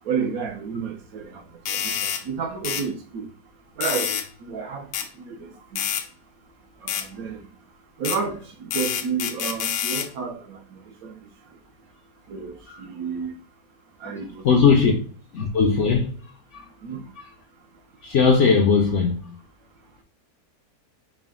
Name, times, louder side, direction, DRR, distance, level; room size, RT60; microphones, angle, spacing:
voice 1, 0.0-3.3 3.8-4.9 5.1-5.8 6.8-7.5 8.0-11.3 12.3-13.4 14.0-15.0 16.8-17.0, right 6 dB, 65° right, 1.1 m, -31 dB
sound 1, 1.7-2.2 2.6-2.9 3.8-4.3 4.9-5.1 5.8-6.0 6.9-7.1 8.0-8.2 8.7-10.1, left 9 dB, 85° left, 1.2 m, -27 dB
voice 2, 14.4-14.9 15.3-16.1 16.5-16.6 18.0-19.2, left 5 dB, 65° left, 0.7 m, -18 dB
4.9 x 2.1 x 3.5 m
omnidirectional pair, 1.7 m